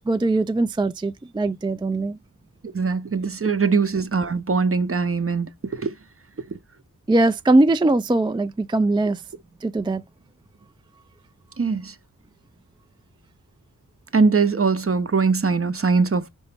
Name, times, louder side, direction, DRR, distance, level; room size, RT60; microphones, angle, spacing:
voice 1, 0.1-2.2 7.1-9.2 9.6-10.0, right 2 dB, 15° right, 0.3 m, -21 dB
voice 2, 2.7-5.5 5.8-5.9 11.6-11.9 14.1-16.3, right 4 dB, 40° right, 0.7 m, -21 dB
5.3 x 2.9 x 3.3 m
wide cardioid pair, 60°, 33 cm